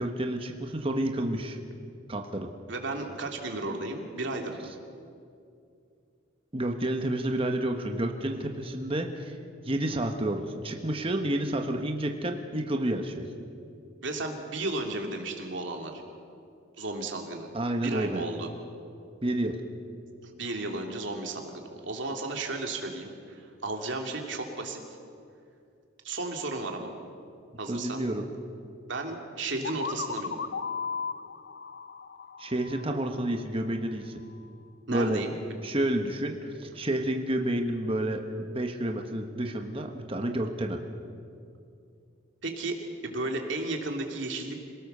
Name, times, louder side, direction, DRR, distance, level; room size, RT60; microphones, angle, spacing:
voice 1, 0.0-1.6 2.1-2.5 6.5-9.4 9.6-13.3 17.5-18.2 19.2-19.6 27.7-28.3 32.4-34.2 34.9-35.2 35.6-40.8, right 1 dB, 30° right, 4 dB, 1.3 m, -30 dB
voice 2, 2.7-4.7 14.0-16.0 16.8-17.5 17.8-18.5 20.2-25.0 26.0-26.9 27.6-28.0 28.9-30.3 34.9-35.3 42.4-44.6, right 2 dB, 65° right, 2 dB, 2.8 m, -34 dB
sound 1, 29.6-33.4, left 5 dB, 55° left, 0.6 m, -36 dB
26.5 x 18.0 x 6.8 m, 2.4 s
head